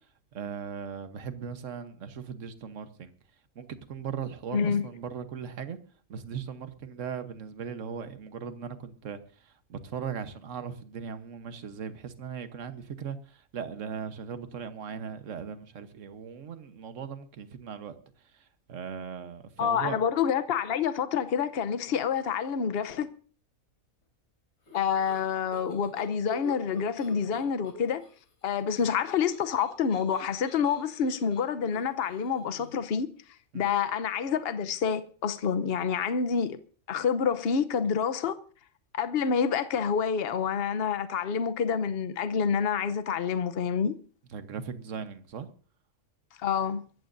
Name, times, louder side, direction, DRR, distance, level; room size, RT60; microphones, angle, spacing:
voice 1, 0.3-3.1 3.5-5.8 6.1-17.9 18.3-20.0 33.5-33.7 44.3-45.5, right 7 dB, 65° right, 1.4 m, -38 dB
voice 2, 4.5-4.8 19.6-23.1 24.7-28.0 28.4-33.1 33.5-36.6 36.9-38.4 38.9-44.0 46.4-46.8, left 7 dB, 50° left, 1.0 m, -28 dB
sound 1, 24.7-28.1 28.4-32.9, right 1 dB, 85° left, 4.5 m, -46 dB
23.5 x 14.5 x 2.6 m
omnidirectional pair, 1.5 m